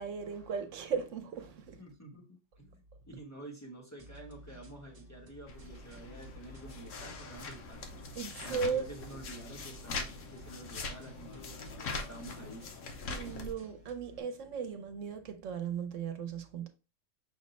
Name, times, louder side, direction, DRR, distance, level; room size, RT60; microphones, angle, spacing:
voice 1, 0.0-1.8 8.2-8.9 13.1-16.7, right 6 dB, 80° right, 1.0 m, -37 dB
voice 2, 1.8-7.8 8.4-12.6, right 1 dB, 15° left, 0.9 m, -49 dB
sound 1, 4.0-14.2, right 1 dB, 35° right, 0.7 m, -55 dB
sound 2, 5.5-13.5, left 3 dB, 85° left, 1.2 m, -42 dB
5.9 x 2.1 x 4.0 m
omnidirectional pair, 1.3 m